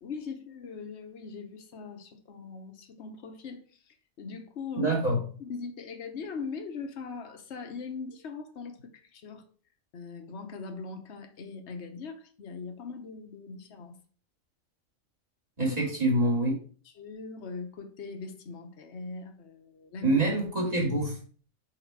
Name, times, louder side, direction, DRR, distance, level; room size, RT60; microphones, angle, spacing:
voice 1, 0.0-5.0 5.4-9.5 9.9-14.0 15.7-15.9 17.0-20.2, left 5 dB, 55° left, 1.2 m, -41 dB
voice 2, 4.8-5.2 15.6-16.5 20.0-21.2, right 2 dB, 30° right, 2.3 m, -25 dB
5.9 x 5.0 x 4.6 m
omnidirectional pair, 1.4 m